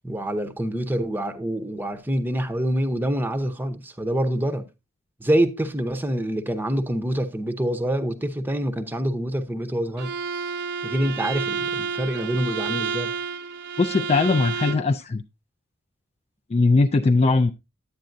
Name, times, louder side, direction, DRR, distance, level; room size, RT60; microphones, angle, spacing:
voice 1, 0.0-4.7 5.2-10.1 10.8-13.1, right 1 dB, 10° right, 0.7 m, -26 dB
Bowed string instrument, 10.0-14.9, right 5 dB, 55° right, 0.7 m, -30 dB
voice 2, 13.8-15.2 16.5-17.5, left 3 dB, 30° left, 0.3 m, -20 dB
10.5 x 8.5 x 2.6 m
head